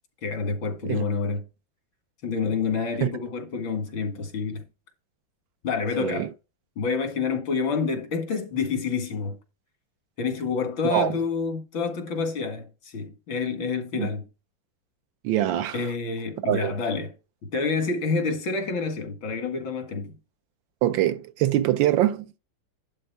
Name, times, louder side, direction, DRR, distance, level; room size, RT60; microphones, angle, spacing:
voice 1, 0.2-1.4 2.2-4.7 5.6-6.3 6.8-9.4 10.2-14.3 15.7-17.1 17.5-20.2, left 4 dB, 85° left, 2.5 m, -28 dB
voice 2, 6.0-6.3 10.8-11.1 14.0-14.1 15.2-15.8 16.5-16.7 20.8-22.3, right 13 dB, 80° right, 1.4 m, -23 dB
11.0 x 3.6 x 5.7 m
omnidirectional pair, 2.1 m